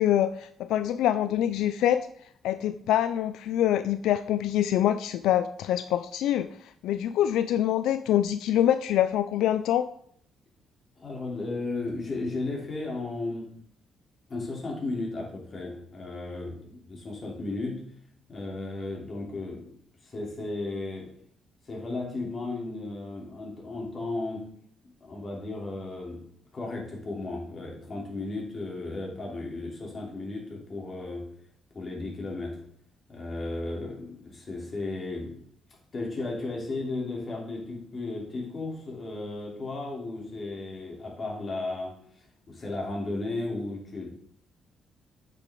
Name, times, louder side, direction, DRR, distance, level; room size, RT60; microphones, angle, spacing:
voice 1, 0.0-2.1 2.4-9.9, left 11 dB, 85° left, 11 dB, 0.3 m, -25 dB
voice 2, 10.9-13.6 14.3-17.9 18.3-19.8 20.0-21.1 21.6-24.6 25.0-26.2 26.5-31.3 31.7-32.6 33.1-35.4 35.9-44.1, left 2 dB, 40° left, -2 dB, 3.2 m, -35 dB
8.3 x 6.7 x 3.8 m, 0.65 s
cardioid pair, 90°, 0 cm